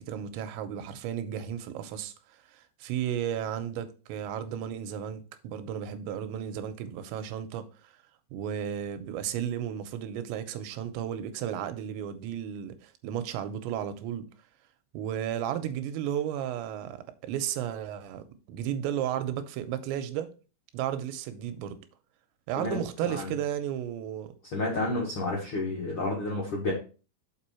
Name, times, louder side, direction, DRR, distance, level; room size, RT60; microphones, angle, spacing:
voice 1, 0.0-7.9 8.3-14.2 14.9-17.0 17.2-20.3 20.7-21.8 22.5-24.3, right 10 dB, 90° right, 3.0 m, -34 dB
voice 2, 24.5-26.7, left 2 dB, 90° left, 1.1 m, -30 dB
6.9 x 4.9 x 4.3 m
omnidirectional pair, 5.2 m